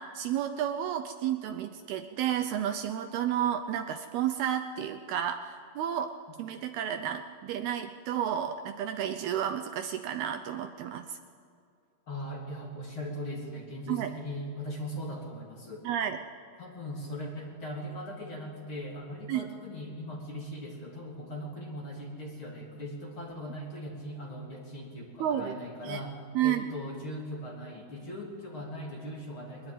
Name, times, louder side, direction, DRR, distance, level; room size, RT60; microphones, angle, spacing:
voice 1, 0.0-6.1 6.4-11.2 13.9-14.1 15.8-16.2 19.3-19.5 25.2-25.5 25.8-26.0 26.4-26.7, right 10 dB, 75° right, 8 dB, 2.5 m, -31 dB
voice 2, 12.1-15.9 16.6-26.2 26.4-29.7, equal, 30° left, -1 dB, 3.6 m, -39 dB
22.5 x 20.5 x 9.1 m, 2.4 s
omnidirectional pair, 5.0 m